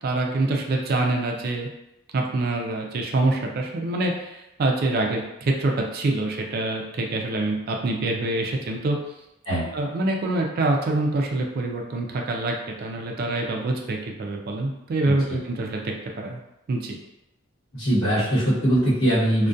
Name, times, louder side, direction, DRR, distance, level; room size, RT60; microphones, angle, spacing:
voice 1, 0.0-1.7 2.1-9.0 9.7-16.4 16.7-17.0, right 2 dB, 45° right, 1 dB, 0.3 m, -25 dB
voice 2, 15.1-15.4 17.7-19.5, right 1 dB, 70° left, -8 dB, 1.0 m, -22 dB
2.3 x 2.1 x 2.5 m, 0.90 s
head